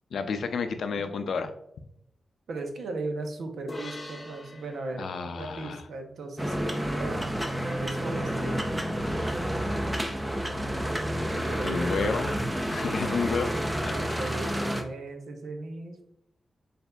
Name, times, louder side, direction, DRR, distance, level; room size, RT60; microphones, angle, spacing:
voice 1, 0.1-1.5 5.0-5.8 11.6-12.4 12.7-13.5 13.8-14.2, left 5 dB, 80° left, 8 dB, 0.4 m, -31 dB
voice 2, 2.5-7.3 7.8-8.6 11.3-12.3 12.9-13.1 13.9-16.0, right 3 dB, 80° right, 4 dB, 0.7 m, -37 dB
sound 1, 3.7-7.2, left 1 dB, 30° left, 0.7 m, -44 dB
sound 2, 6.4-14.8, equal, 10° right, 0.5 m, -30 dB
sound 3, 8.3-13.9, equal, 55° right, 1.3 m, -48 dB
6.6 x 2.6 x 2.3 m, 0.76 s
cardioid pair, 90°, 0 cm